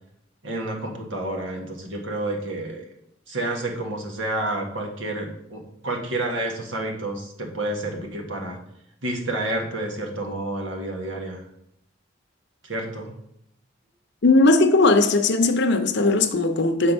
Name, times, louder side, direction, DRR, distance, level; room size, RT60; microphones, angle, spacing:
voice 1, 0.4-2.9 3.3-8.6 9.0-11.4 12.6-13.1, right 1 dB, 90° right, 1.5 m, -29 dB
voice 2, 14.2-16.9, left 2 dB, 60° left, 0.7 m, -18 dB
6.8 x 4.5 x 5.4 m
head